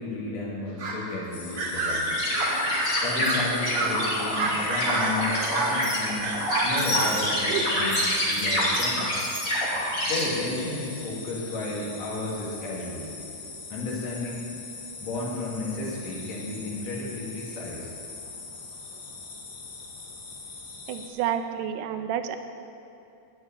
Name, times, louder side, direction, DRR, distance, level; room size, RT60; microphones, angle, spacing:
voice 1, 0.0-2.1 3.0-6.3 6.6-9.1 10.1-13.1 13.7-14.5 15.0-17.9, left 2 dB, 50° left, -5 dB, 3.4 m, -33 dB
sound 1, 0.8-1.1 1.5-2.9 3.2-3.5 3.7-3.9 4.3-5.8 6.2-7.7, right 2 dB, 55° right, 2.4 m, -28 dB
sound 2, 1.3-21.1, left 4 dB, 75° left, 3.5 m, -41 dB
sound 3, 2.1-10.2, left 1 dB, 25° left, 2.6 m, -27 dB
voice 2, 20.9-22.4, right 9 dB, 80° right, 7 dB, 2.1 m, -29 dB
12.5 x 7.4 x 9.0 m, 2.6 s
omnidirectional pair, 3.9 m